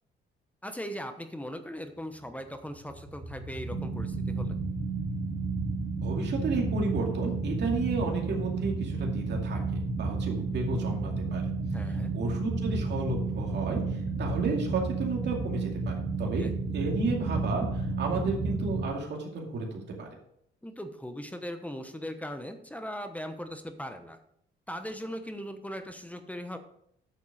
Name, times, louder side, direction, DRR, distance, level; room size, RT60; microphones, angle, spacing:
voice 1, 0.6-4.6 11.7-12.1 16.4-16.5 20.6-24.2 24.7-26.6, equal, 5° left, 8 dB, 1.0 m, -39 dB
sound 1, 2.5-18.9, right 3 dB, 30° right, 3.8 m, -32 dB
voice 2, 6.0-9.6 9.9-11.4 12.1-20.1, right 3 dB, 60° right, 0 dB, 2.4 m, -32 dB
8.8 x 7.0 x 4.9 m, 0.72 s
cardioid pair, 90°, 20 cm